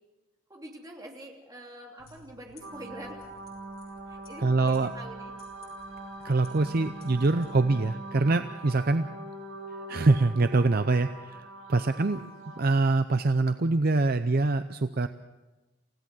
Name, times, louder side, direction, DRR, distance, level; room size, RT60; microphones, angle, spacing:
voice 1, 0.5-3.2 4.1-5.3 11.8-12.2, right 1 dB, 15° right, 0 dB, 3.1 m, -45 dB
sound 1, 2.0-7.5, left 2 dB, 70° left, 8.0 m, -57 dB
sound 2, 2.6-12.6, right 2 dB, 80° right, 4.4 m, -42 dB
voice 2, 4.4-4.9 6.2-9.1 9.9-12.2 12.6-15.1, right 3 dB, 45° right, 10 dB, 0.6 m, -24 dB
28.5 x 16.0 x 6.2 m, 1.1 s
head